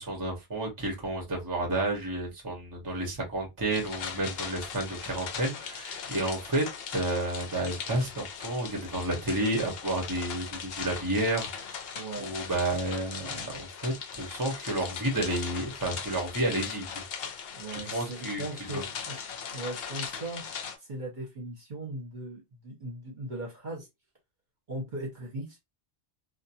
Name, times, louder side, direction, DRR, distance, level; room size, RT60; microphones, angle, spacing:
voice 1, 0.0-6.7 6.9-11.8 12.2-17.0 17.7-18.4 18.7-18.8, right 1 dB, 20° right, 0.8 m, -31 dB
sound 1, 3.7-20.8, left 7 dB, 65° left, 0.7 m, -39 dB
voice 2, 11.9-12.3 17.5-19.2 19.5-20.4 20.8-23.9 24.7-25.6, right 2 dB, 45° right, 1.0 m, -38 dB
2.5 x 2.2 x 2.7 m
omnidirectional pair, 1.2 m